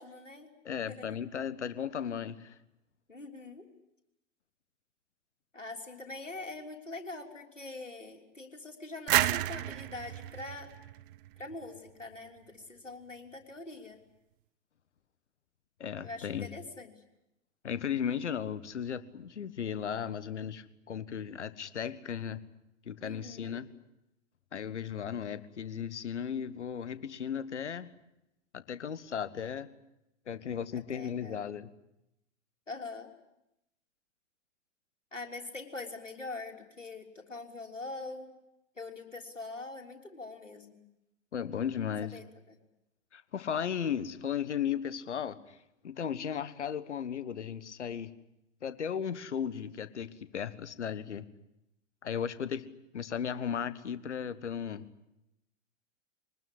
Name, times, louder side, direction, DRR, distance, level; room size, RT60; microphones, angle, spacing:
voice 1, 0.0-0.5 0.9-1.2 3.1-3.7 5.5-10.7 11.4-14.0 16.0-17.0 23.0-23.6 30.9-31.4 32.7-33.1 35.1-38.3 38.8-40.8 42.1-42.6, left 3 dB, 85° left, 3 dB, 3.5 m, -43 dB
voice 2, 0.6-2.5 15.8-16.5 17.6-22.4 22.8-23.7 24.5-27.9 28.5-29.7 30.3-31.7 41.3-42.2 43.1-45.6 45.8-48.1 48.6-51.3 52.0-52.7 52.9-54.9, left 8 dB, 70° left, 15 dB, 1.5 m, -35 dB
sound 1, 9.1-11.8, right 15 dB, 45° right, 1.0 m, -31 dB
24.0 x 20.0 x 9.9 m, 0.86 s
figure-of-eight pair, 100°, 36 cm